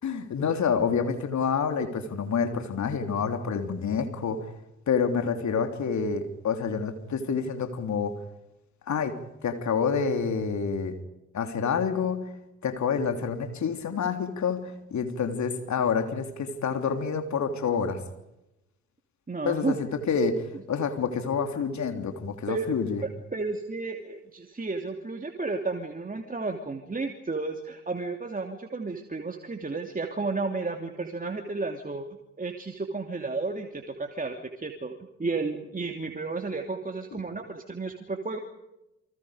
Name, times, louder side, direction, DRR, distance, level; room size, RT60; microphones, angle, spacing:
voice 1, 0.0-4.4 4.9-8.2 8.9-11.0 11.3-12.2 12.6-18.0 19.4-23.0, left 6 dB, 50° left, 6 dB, 3.4 m, -28 dB
voice 2, 19.3-19.8 22.5-22.7 23.0-32.1 32.4-38.4, right 3 dB, 25° right, 4 dB, 3.0 m, -32 dB
29.5 x 24.5 x 5.2 m, 0.92 s
figure-of-eight pair, 45°, 36 cm